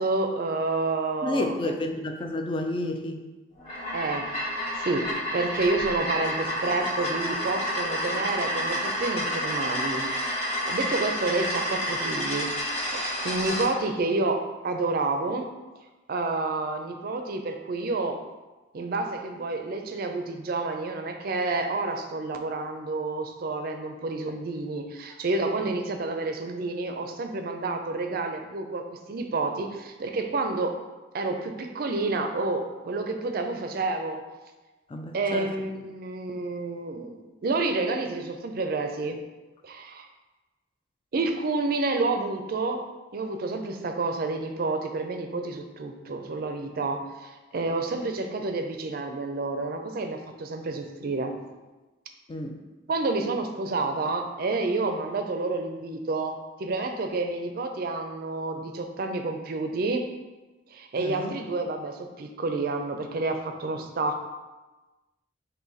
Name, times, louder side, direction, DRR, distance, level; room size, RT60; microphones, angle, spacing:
voice 1, 0.0-1.7 3.9-12.5 12.9-15.5 16.1-18.2 18.7-30.8 31.1-34.2 35.1-39.2 39.6-40.1 41.1-42.8 43.1-51.5 52.9-60.1 60.7-64.2, right 3 dB, 50° right, 5 dB, 0.4 m, -29 dB
voice 2, 1.2-3.2 25.7-25.8 34.9-35.5 52.3-52.6 61.0-61.4, left 2 dB, 25° left, 4 dB, 0.3 m, -31 dB
sound 1, 3.6-13.7, equal, 45° left, 1.2 m, -30 dB
3.9 x 2.6 x 3.8 m, 1.2 s
head